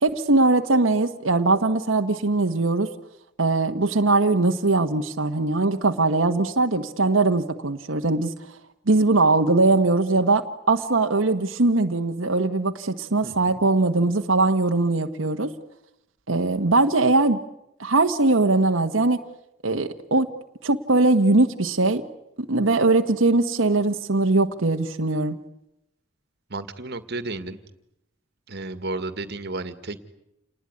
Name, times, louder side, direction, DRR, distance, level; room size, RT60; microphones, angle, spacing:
voice 1, 0.0-2.9 3.4-8.3 8.9-15.5 16.3-17.4 17.8-19.2 19.6-20.3 20.6-22.0 22.4-25.4, right 2 dB, 90° right, 5 dB, 1.4 m, -21 dB
voice 2, 26.5-27.6 28.5-30.0, right 2 dB, 55° right, 12 dB, 2.1 m, -32 dB
28.5 x 20.0 x 9.8 m, 0.84 s
head